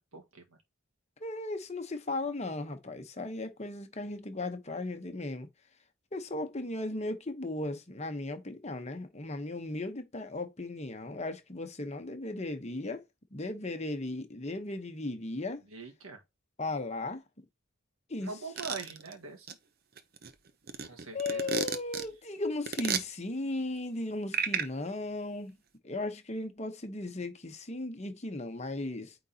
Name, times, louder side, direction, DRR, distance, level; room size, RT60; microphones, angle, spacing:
voice 1, 0.1-0.6 15.6-16.2 18.2-19.5 20.8-21.5, right 4 dB, 85° right, 1.7 m, -43 dB
voice 2, 1.2-5.5 6.1-13.0 13.3-15.6 16.6-17.4 18.1-18.3 21.1-25.6 25.8-29.2, left 2 dB, 30° left, 1.0 m, -36 dB
sound 1, 18.6-19.1 19.5-19.6 20.0-22.1 22.7-23.0 24.3-24.7, right 6 dB, 45° right, 0.7 m, -32 dB
9.0 x 3.9 x 2.8 m
head